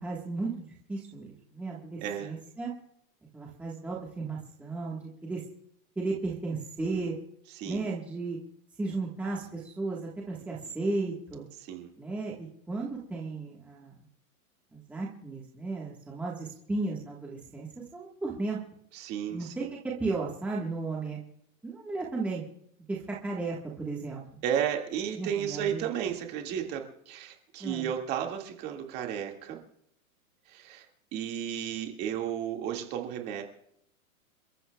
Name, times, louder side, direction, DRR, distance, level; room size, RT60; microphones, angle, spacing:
voice 1, 0.0-2.7 3.3-5.4 5.9-7.1 7.6-8.4 8.8-11.5 12.0-13.9 14.7-18.6 19.3-21.2 21.6-22.4 22.9-24.2 25.2-25.9 27.6-27.9, right 3 dB, 5° right, -4 dB, 1.4 m, -34 dB
voice 2, 2.0-2.3 7.6-7.9 11.6-11.9 18.9-19.7 24.4-29.6 30.5-30.9 31.1-33.4, right 9 dB, 25° right, 2 dB, 2.0 m, -33 dB
29.0 x 14.0 x 2.3 m, 0.72 s
supercardioid pair, 170°, 43 cm